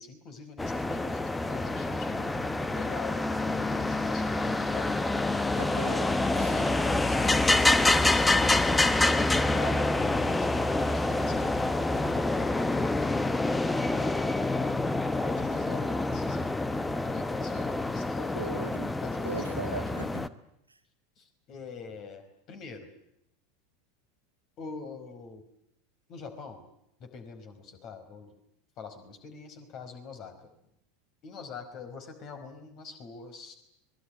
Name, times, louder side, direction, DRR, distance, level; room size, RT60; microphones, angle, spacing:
voice 1, 0.0-3.2 3.5-4.9 6.4-9.0 9.5-12.7 15.2-18.5 19.0-19.9 21.2-22.9 24.6-25.4 26.1-26.7 27.0-28.3 28.8-30.5 31.2-33.6, left 4 dB, 40° left, 8 dB, 4.9 m, -44 dB
sound 1, 0.6-20.3, left 2 dB, 10° left, 1.1 m, -27 dB
voice 2, 5.6-6.5 18.3-18.9 19.2-20.3, right 4 dB, 85° right, 6 dB, 2.0 m, -39 dB
25.0 x 21.0 x 9.3 m, 0.78 s
figure-of-eight pair, 80°, 0 cm